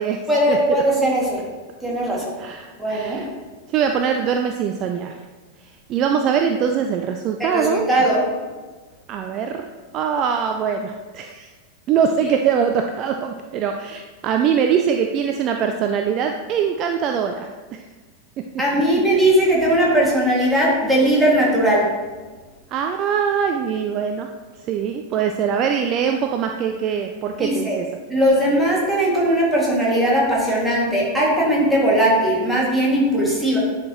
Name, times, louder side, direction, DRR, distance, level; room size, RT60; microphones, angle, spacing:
voice 1, 0.3-1.4 1.8-2.3 2.8-3.2 7.4-8.2 18.6-21.9 27.4-27.8 28.1-33.6, right 1 dB, ahead, -6 dB, 2.2 m, -19 dB
voice 2, 2.4-3.3 3.7-5.1 5.9-7.8 9.1-9.7 9.9-11.5 11.9-17.8 22.7-24.3 24.7-27.9, right 7 dB, 35° right, 5 dB, 0.4 m, -22 dB
10.0 x 5.0 x 3.0 m, 1.3 s
figure-of-eight pair, 90°, 0 cm